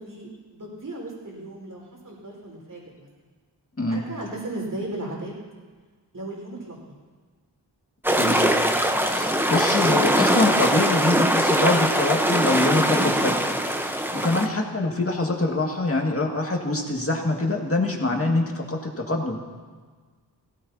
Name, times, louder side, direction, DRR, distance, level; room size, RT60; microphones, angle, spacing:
voice 1, 0.0-3.1 3.9-5.3 6.1-6.8 14.4-14.7, right 2 dB, 50° right, -3 dB, 4.9 m, -36 dB
sound 1, 8.0-14.5, equal, 5° right, 1.0 m, -22 dB
voice 2, 8.1-8.5 9.0-13.4 14.1-19.4, left 2 dB, 35° left, 0 dB, 2.1 m, -24 dB
17.5 x 16.0 x 2.9 m, 1.5 s
cardioid pair, 65°, 40 cm